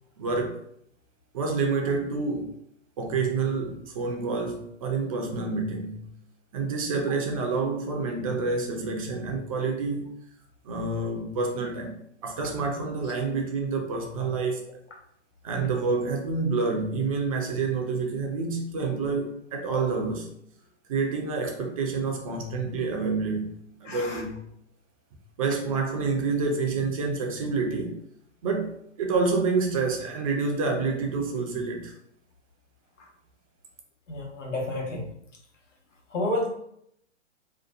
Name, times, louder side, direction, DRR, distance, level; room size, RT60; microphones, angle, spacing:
voice 1, 0.2-0.6 1.3-2.5 3.0-6.1 6.5-10.1 10.6-14.7 15.4-20.3 20.9-24.4 25.4-28.0 28.4-31.9, right 4 dB, 30° right, 2 dB, 0.4 m, -28 dB
voice 2, 23.8-24.2 34.1-35.1 36.1-36.5, left 1 dB, 85° left, -1 dB, 1.0 m, -30 dB
2.7 x 2.2 x 2.4 m, 0.71 s
hypercardioid pair, 120°, 36 cm